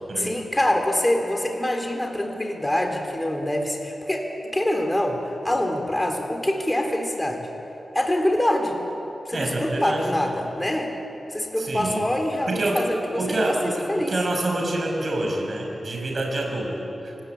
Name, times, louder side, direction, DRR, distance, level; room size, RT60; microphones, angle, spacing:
voice 1, 0.2-7.5 7.9-8.8 9.3-10.9 11.3-14.1, left 1 dB, 15° left, 3 dB, 4.0 m, -25 dB
voice 2, 9.3-10.1 11.6-12.1 12.5-17.2, right 1 dB, 55° right, 0 dB, 6.0 m, -27 dB
29.5 x 18.5 x 9.0 m, 2.9 s
cardioid pair, 70°, 0 cm